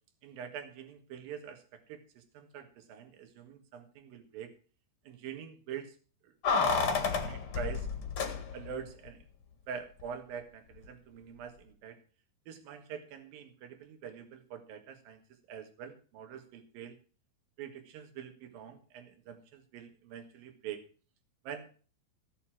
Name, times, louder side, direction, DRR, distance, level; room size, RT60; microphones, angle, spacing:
voice 1, 0.2-4.5 5.1-6.0 6.2-6.3 6.9-7.9 8.5-9.3 9.7-12.0 12.5-17.0 17.6-20.8 21.4-21.7, right 8 dB, 70° right, 7 dB, 3.4 m, -45 dB
Keys jangling, 6.4-8.8 9.1-9.2, left 5 dB, 45° left, 2.2 m, -30 dB
16.5 x 7.1 x 6.0 m, 0.38 s
omnidirectional pair, 4.4 m